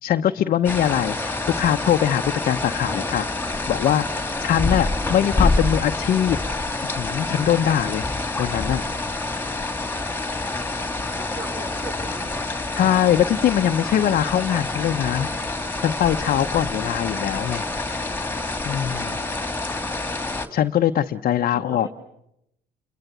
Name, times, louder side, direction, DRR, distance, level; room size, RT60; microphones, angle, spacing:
voice 1, 0.0-6.4 7.0-8.1 8.4-8.8 12.7-15.3 15.8-17.7 18.6-19.2 20.5-21.9, left 10 dB, 55° left, 5 dB, 0.9 m, -22 dB
sound 1, 0.6-20.5, left 2 dB, 10° left, 2.6 m, -27 dB
voice 2, 11.0-12.3 21.4-21.9, right 3 dB, 25° right, 0 dB, 5.0 m, -38 dB
28.5 x 22.5 x 8.2 m, 0.80 s
cardioid pair, 110°, 17 cm